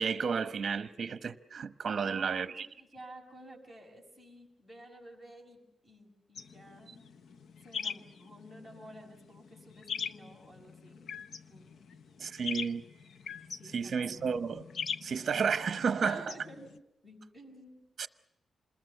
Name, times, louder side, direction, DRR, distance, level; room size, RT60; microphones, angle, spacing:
voice 1, 0.0-2.7 12.2-12.8 13.7-14.6 15.0-16.2 18.0-18.1, right 6 dB, 45° right, 1.0 m, -32 dB
voice 2, 2.0-7.0 7.6-11.1 11.5-11.7 13.6-14.2 16.0-16.7 17.0-17.9, right 1 dB, 10° left, 6.3 m, -52 dB
sound 1, 6.4-16.8, left 6 dB, 65° left, 0.8 m, -42 dB
27.5 x 21.0 x 6.9 m
wide cardioid pair, 150°, 0 cm